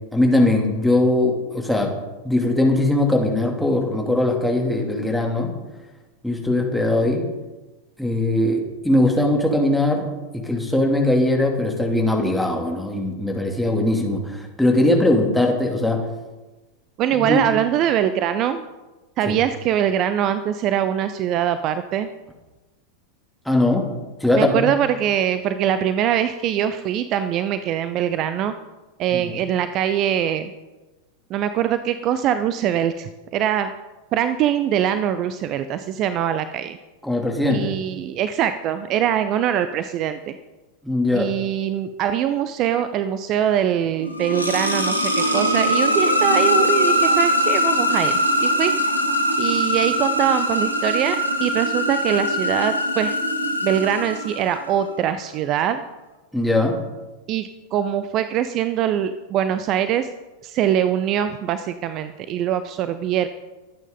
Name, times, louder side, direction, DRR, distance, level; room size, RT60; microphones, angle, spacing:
voice 1, 0.1-1.9 2.2-5.5 6.2-7.2 8.0-10.1 10.3-16.0 17.1-17.4 19.3-19.4 23.5-23.8 24.2-24.7 29.1-29.3 37.0-37.7 40.8-41.3 56.3-56.8, left 1 dB, ahead, 0 dB, 2.8 m, -20 dB
voice 2, 17.0-18.7 19.2-22.1 24.3-28.5 29.0-30.5 31.3-33.7 34.1-36.8 37.5-40.4 41.1-48.7 49.4-53.2 53.6-55.8 57.3-60.1 60.4-63.3, right 10 dB, 35° right, 12 dB, 0.6 m, -23 dB
sound 1, 44.0-54.7, equal, 85° right, 1.8 m, -21 dB
22.5 x 9.1 x 3.9 m, 1.1 s
figure-of-eight pair, 90°, 0 cm